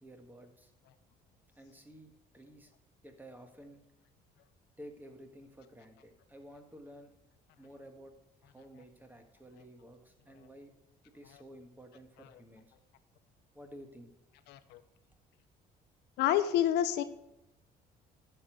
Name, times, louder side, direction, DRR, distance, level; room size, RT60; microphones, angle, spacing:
voice 1, 0.0-0.7 1.6-2.7 3.0-3.8 4.8-7.1 7.6-8.1 8.4-10.7 11.1-12.7 13.5-14.1, equal, 10° right, 6 dB, 1.6 m, -52 dB
voice 2, 14.5-14.8 16.2-17.0, left 11 dB, 85° left, 11 dB, 0.8 m, -28 dB
10.0 x 6.8 x 6.2 m, 0.85 s
cardioid pair, 110°, 17 cm